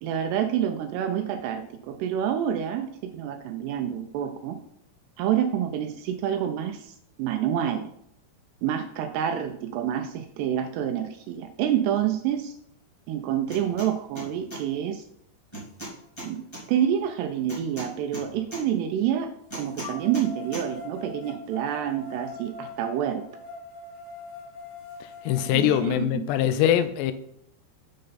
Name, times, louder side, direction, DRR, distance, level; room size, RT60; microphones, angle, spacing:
voice 1, 0.0-2.9 3.1-4.6 5.2-6.9 7.2-7.9 8.6-12.5 13.1-15.0 16.2-16.4 16.7-23.2 25.5-26.6, right 9 dB, 85° right, 7 dB, 2.4 m, -28 dB
sound 1, 13.5-13.9 14.1-14.6 15.5-16.6 17.5-18.6 19.5-20.3 20.5-20.6, right 1 dB, 15° left, 0.9 m, -37 dB
sound 2, 16.0-16.1 16.7-18.6 19.8-25.8, left 3 dB, 55° left, 2.3 m, -43 dB
voice 2, 25.3-27.1, left 11 dB, 80° left, 11 dB, 2.6 m, -22 dB
7.7 x 6.4 x 4.0 m, 0.69 s
omnidirectional pair, 5.2 m